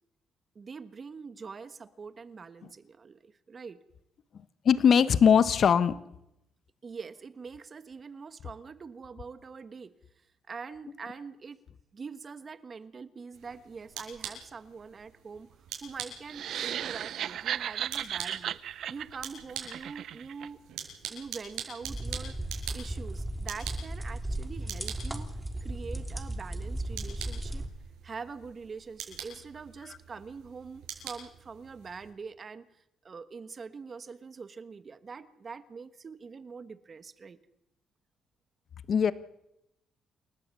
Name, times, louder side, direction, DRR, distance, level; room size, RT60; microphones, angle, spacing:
voice 1, 0.5-3.8 6.8-9.9 10.5-11.6 11.9-15.5 15.8-18.6 18.9-20.6 21.1-22.4 22.7-25.3 25.6-27.7 28.0-32.7 33.0-37.4, right 5 dB, 40° right, 12 dB, 1.4 m, -44 dB
voice 2, 4.6-5.9 29.9-30.0 38.9-39.1, left 7 dB, 55° left, 14 dB, 1.1 m, -21 dB
sound 1, 13.3-32.1, right 8 dB, 90° right, 7.7 m, -45 dB
sound 2, 16.3-20.5, right 10 dB, 70° right, 0.7 m, -35 dB
sound 3, 21.8-27.7, right 1 dB, 10° right, 3.2 m, -36 dB
28.5 x 13.0 x 8.4 m, 0.83 s
cardioid pair, 90°, 0 cm